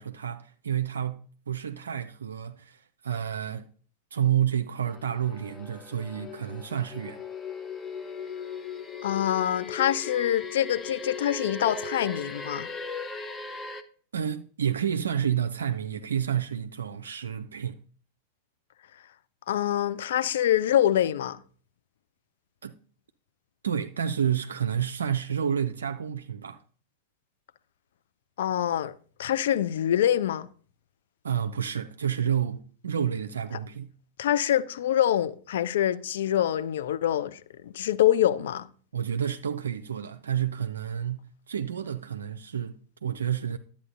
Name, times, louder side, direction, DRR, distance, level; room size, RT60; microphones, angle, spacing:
voice 1, 0.0-3.6 4.1-7.2 14.1-17.8 22.6-22.7 23.6-26.6 31.2-33.9 38.9-43.6, right 9 dB, 70° right, 0.4 m, -30 dB
sound 1, 4.9-13.8, left 5 dB, 20° left, 0.8 m, -38 dB
voice 2, 9.0-12.7 19.5-21.4 28.4-28.9 29.2-30.5 34.2-38.7, left 11 dB, 60° left, 0.5 m, -25 dB
12.0 x 8.4 x 2.6 m
figure-of-eight pair, 90°, 0 cm